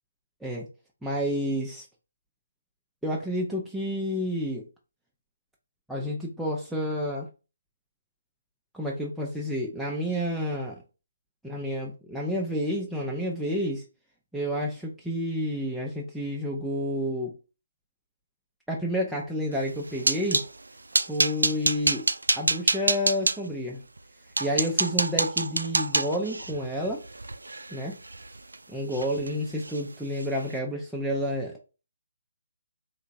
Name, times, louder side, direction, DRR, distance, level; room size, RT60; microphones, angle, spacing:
voice 1, 1.0-1.9 3.0-4.7 5.9-7.3 8.7-10.8 11.4-13.8 14.3-17.4 18.7-20.4 21.1-22.1 22.3-23.8 24.4-27.0 27.7-28.0 28.7-31.6, equal, ahead, -3 dB, 0.5 m, -30 dB
sound 1, 19.6-20.5 20.9-23.4 24.0-24.1 24.4-28.6 28.9-29.3 29.6-29.8 30.2-30.4, right 2 dB, 75° right, 0.3 m, -27 dB
3.2 x 2.8 x 2.6 m, 0.32 s
figure-of-eight pair, 145°, 0 cm